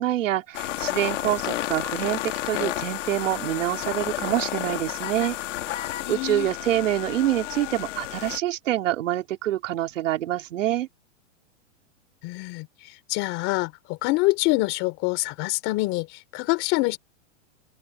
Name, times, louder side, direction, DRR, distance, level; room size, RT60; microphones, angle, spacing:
voice 1, 0.0-5.3 6.1-10.9, right 13 dB, 75° right, 3.2 m, -26 dB
sound 1, 0.5-8.4, left 14 dB, 70° left, 2.4 m, -31 dB
voice 2, 6.0-6.5 12.2-12.7 13.1-17.0, left 22 dB, 30° left, 4.1 m, -25 dB
open air
supercardioid pair, 170°, 38 cm